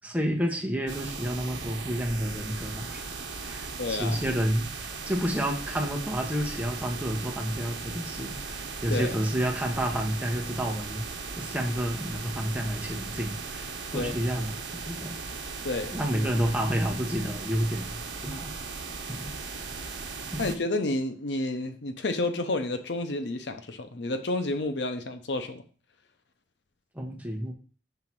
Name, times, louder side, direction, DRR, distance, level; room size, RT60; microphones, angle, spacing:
voice 1, 0.0-3.0 3.4-11.1 11.4-15.2 15.9-18.5 19.1-19.3 20.3-20.5 26.9-27.5, equal, 10° right, 1 dB, 1.1 m, -30 dB
sound 1, 0.9-20.6, right 4 dB, 80° right, 1.0 m, -38 dB
voice 2, 3.8-4.2 8.9-9.2 13.9-14.1 15.6-16.0 18.3-18.4 20.4-25.6, left 2 dB, 65° left, 7 dB, 0.7 m, -30 dB
5.8 x 3.8 x 5.9 m, 0.39 s
head